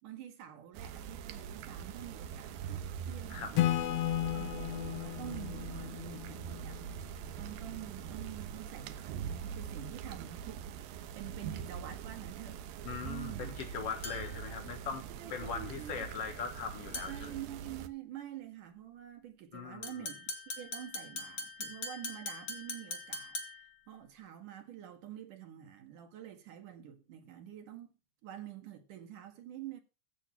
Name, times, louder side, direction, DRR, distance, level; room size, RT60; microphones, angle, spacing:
voice 1, 0.0-6.8 7.4-12.6 13.1-13.6 15.2-16.1 17.1-20.3 20.6-23.4 23.9-27.9 28.2-29.8, right 11 dB, 55° right, 2.9 m, -47 dB
sound 1, 0.7-17.9, right 8 dB, 75° right, 2.3 m, -43 dB
Acoustic guitar / Strum, 3.6-7.1, left 13 dB, 90° left, 3.3 m, -34 dB
voice 2, 12.8-15.0 15.3-17.3 19.5-19.9, left 6 dB, 75° left, 1.4 m, -40 dB
sound 2, 14.0-14.5 16.9-17.3 19.8-23.8, left 3 dB, 50° left, 1.5 m, -42 dB
15.5 x 6.4 x 6.0 m
omnidirectional pair, 4.8 m